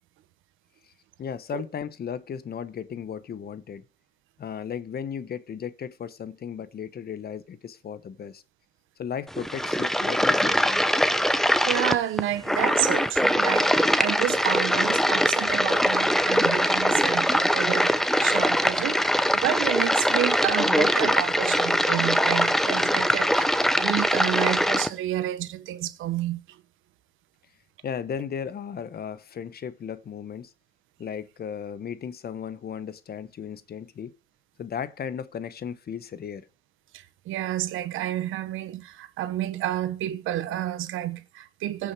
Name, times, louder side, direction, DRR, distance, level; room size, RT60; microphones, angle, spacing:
voice 1, 1.2-3.8 4.4-8.4 9.0-11.0 27.8-30.5 31.0-34.1 34.6-36.5, left 7 dB, 50° left, 1.0 m, -35 dB
sound 1, 9.3-24.9, equal, ahead, 0.9 m, -22 dB
voice 2, 11.3-26.6 36.9-41.9, right 13 dB, 90° right, 1.1 m, -30 dB
16.5 x 6.2 x 4.8 m
cardioid pair, 90°, 20 cm